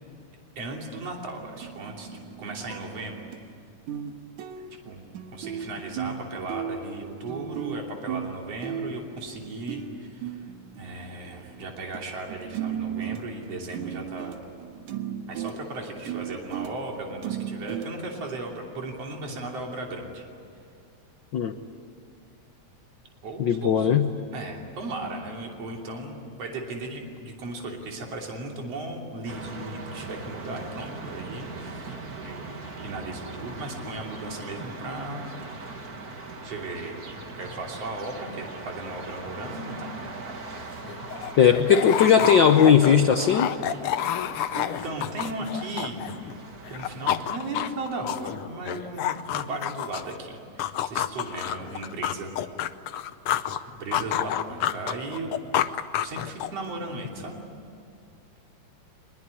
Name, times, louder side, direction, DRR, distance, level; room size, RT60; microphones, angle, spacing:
voice 1, 0.6-2.1 2.4-3.2 4.8-5.0 5.3-10.5 10.8-14.4 15.3-20.2 23.2-23.9 24.3-32.0 32.2-32.6 32.8-35.3 36.4-36.9 37.4-40.1 44.5-46.0 46.7-52.3 53.7-55.3 56.0-57.4, right 2 dB, 55° right, 0 dB, 4.1 m, -36 dB
sound 1, 1.4-3.5 3.9-4.1 4.4-12.0 12.3-18.4, right 9 dB, 80° right, 2.6 m, -36 dB
voice 2, 23.4-24.1 41.4-43.5, left 7 dB, 90° left, 7 dB, 1.0 m, -18 dB
sound 2, 29.3-47.4, right 3 dB, 35° right, 1.9 m, -40 dB
sound 3, 40.5-40.6 40.8-46.4 46.7-50.2 50.6-53.6 53.9-56.7, left 11 dB, 70° left, 1.3 m, -29 dB
24.0 x 21.5 x 9.8 m, 2.5 s
omnidirectional pair, 3.4 m